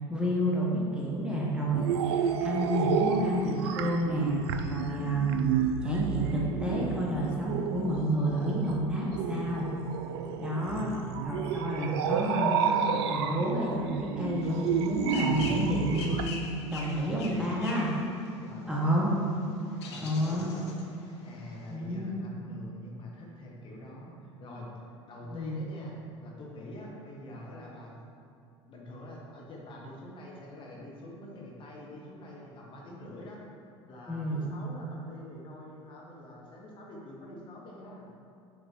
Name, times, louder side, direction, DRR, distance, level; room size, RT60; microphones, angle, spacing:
voice 1, 0.1-4.4 4.7-5.3 5.8-9.7 10.4-10.9 11.2-16.4 16.7-17.9 18.7-19.1 20.0-20.5 21.7-22.1 25.3-25.6 34.1-34.5, equal, 5° right, -5 dB, 1.2 m, -30 dB
sound 1, 1.7-16.3, right 7 dB, 60° right, 0.4 m, -31 dB
voice 2, 10.6-11.1 18.4-18.9 19.8-28.0 28.7-33.4 33.9-38.0, left 1 dB, 35° left, -3 dB, 1.1 m, -46 dB
sound 2, 14.4-21.7, left 4 dB, 65° left, 0.7 m, -44 dB
6.4 x 3.5 x 4.5 m, 2.5 s
figure-of-eight pair, 70°, 15 cm